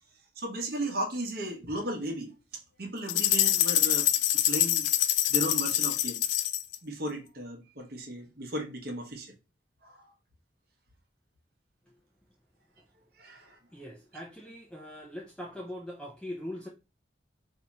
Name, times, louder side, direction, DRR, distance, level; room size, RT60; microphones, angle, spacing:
voice 1, 0.4-4.1 4.5-4.9 5.3-6.2 6.8-9.3 9.8-10.1 13.2-13.6, right 1 dB, 55° right, 0.9 m, -35 dB
sound 1, 3.1-6.8, left 13 dB, 80° left, 0.3 m, -25 dB
voice 2, 13.7-16.7, left 1 dB, 5° left, 0.4 m, -41 dB
2.7 x 2.4 x 4.0 m
head